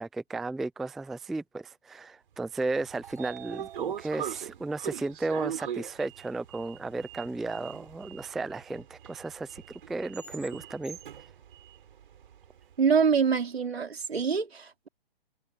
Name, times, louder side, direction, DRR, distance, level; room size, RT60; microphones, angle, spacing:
voice 1, 0.0-11.0, right 3 dB, ahead, 0.4 m, -34 dB
Sliding door, 2.6-12.8, right 9 dB, 55° right, 5.8 m, -41 dB
voice 2, 12.8-14.9, right 6 dB, 75° right, 5.0 m, -25 dB
hypercardioid pair, 140°, 31 cm